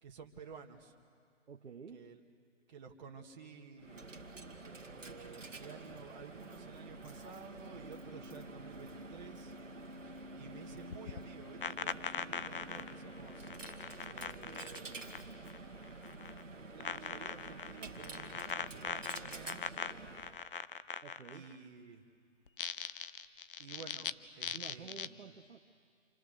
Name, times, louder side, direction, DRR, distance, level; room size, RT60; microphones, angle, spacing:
voice 1, 0.0-0.9 1.9-2.2 2.7-4.0 4.6-9.5 10.3-13.5 14.1-15.5 16.7-19.6 21.3-22.0 23.6-25.3, right 5 dB, 35° right, 1 dB, 2.1 m, -53 dB
voice 2, 1.5-2.1 21.0-21.5 24.5-25.6, right 6 dB, 65° right, 4 dB, 1.2 m, -50 dB
Coin (dropping), 3.8-20.4, right 2 dB, 80° right, 1.9 m, -49 dB
sound 1, 10.9-15.6 15.8-16.4 16.8-21.5 22.5-24.1 24.4-25.1, left 7 dB, 45° left, 0.7 m, -41 dB
28.0 x 26.0 x 6.7 m, 2.2 s
figure-of-eight pair, 150°, 37 cm